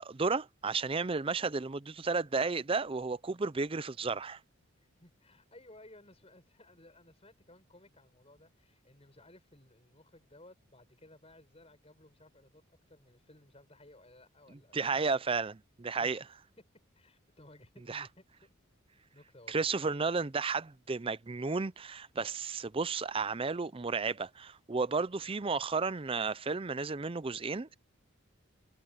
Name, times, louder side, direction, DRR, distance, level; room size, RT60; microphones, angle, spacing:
voice 1, 0.0-4.4 14.7-16.2 17.9-18.1 19.5-27.7, right 4 dB, 25° right, 0.5 m, -33 dB
voice 2, 4.8-15.0 15.9-16.2 16.6-16.7 16.9-18.5 19.1-19.7, left 1 dB, 30° left, 7.3 m, -58 dB
head